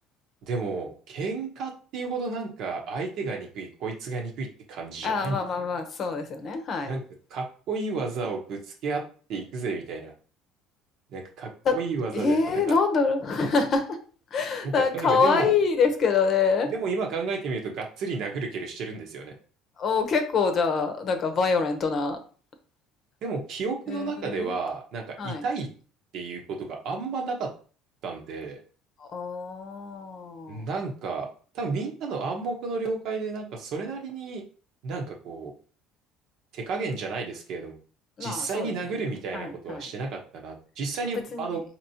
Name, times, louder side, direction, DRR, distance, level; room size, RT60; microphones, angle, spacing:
voice 1, 0.4-5.4 6.9-7.0 7.3-9.0 9.3-10.1 11.1-12.4 12.7-12.8 14.6-15.5 16.7-19.3 23.2-25.7 26.1-27.5 28.0-28.6 30.5-31.3 31.5-34.4 34.8-35.5 36.5-37.8 38.2-41.6, right 4 dB, 65° right, 1 dB, 1.0 m, -32 dB
voice 2, 5.0-6.9 11.6-11.7 12.1-14.0 14.3-16.7 19.8-22.2 23.9-24.6 25.2-25.4 29.0-30.6 38.2-38.7 39.0-39.1 39.3-39.9 41.0-41.6, left 5 dB, 45° left, 7 dB, 0.8 m, -25 dB
4.3 x 3.0 x 2.8 m, 0.40 s
cardioid pair, 110°, 0 cm